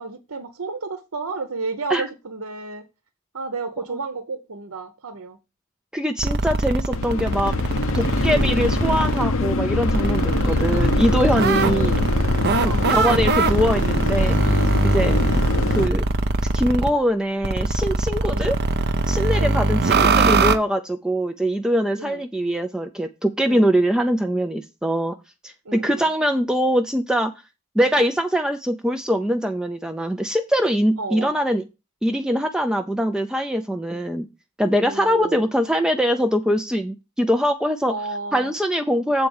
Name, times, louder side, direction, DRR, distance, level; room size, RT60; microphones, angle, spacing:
voice 1, 0.0-2.8 3.3-5.4 8.3-8.6 11.5-12.1 12.6-12.9 15.0-15.3 18.3-18.5 19.4-19.8 22.0-22.2 23.4-23.7 25.6-26.1 31.0-31.3 34.8-35.5 37.9-38.5, right 3 dB, 70° right, 1.0 m, -32 dB
voice 2, 5.9-7.5 7.9-11.9 12.6-14.4 14.8-15.2 15.7-16.0 16.5-18.6 19.1-25.2 25.4-27.3 27.8-31.6 32.0-34.3 34.6-37.9 38.3-39.3, equal, 5° right, 0.5 m, -22 dB
sound 1, 6.2-9.2 9.8-16.9 17.4-20.6, right 3 dB, 50° right, 0.8 m, -21 dB
sound 2, 6.9-15.9, left 3 dB, 65° left, 0.8 m, -24 dB
7.6 x 4.5 x 7.1 m
head